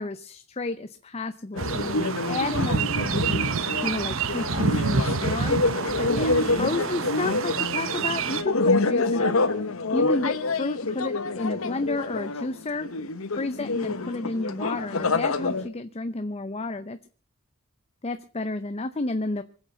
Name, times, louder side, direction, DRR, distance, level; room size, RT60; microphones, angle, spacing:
voice 1, 0.0-3.2 3.8-5.6 6.0-9.3 9.9-12.9 13.3-17.0 18.0-19.4, left 2 dB, 30° left, 10 dB, 0.6 m, -31 dB
sound 1, 1.5-15.7, left 3 dB, 75° left, 1.1 m, -27 dB
sound 2, 1.6-8.4, right 5 dB, 65° right, 0.8 m, -28 dB
25.0 x 8.3 x 5.6 m, 0.40 s
head